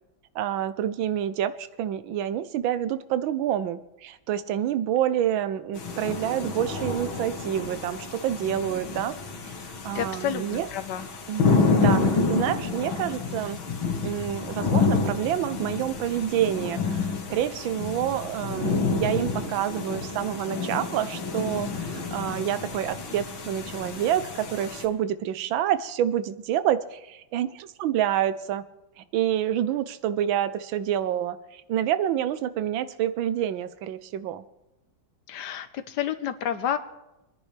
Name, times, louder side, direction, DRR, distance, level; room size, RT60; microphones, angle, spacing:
voice 1, 0.3-9.2 9.5-9.6 9.8-10.7 11.3-11.4 11.7-13.6 14.0-28.6 29.0-34.4, right 10 dB, 80° right, 14 dB, 1.5 m, -28 dB
sound 1, 5.7-24.8, left 4 dB, 90° left, 2.4 m, -29 dB
voice 2, 9.9-11.1 35.3-36.8, left 10 dB, 65° left, 10 dB, 1.4 m, -30 dB
26.5 x 10.0 x 3.4 m, 0.99 s
omnidirectional pair, 2.2 m